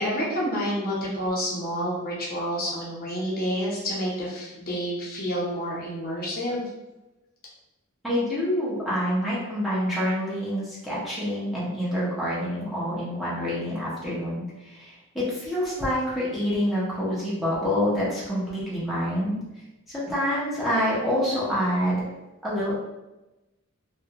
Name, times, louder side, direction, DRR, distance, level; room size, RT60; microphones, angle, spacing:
voice 1, 0.0-6.6, equal, 40° left, -5 dB, 0.7 m, -29 dB
voice 2, 8.0-19.4 19.9-22.0 22.4-22.8, equal, ahead, -10 dB, 0.6 m, -27 dB
2.4 x 2.2 x 2.7 m, 1.0 s
head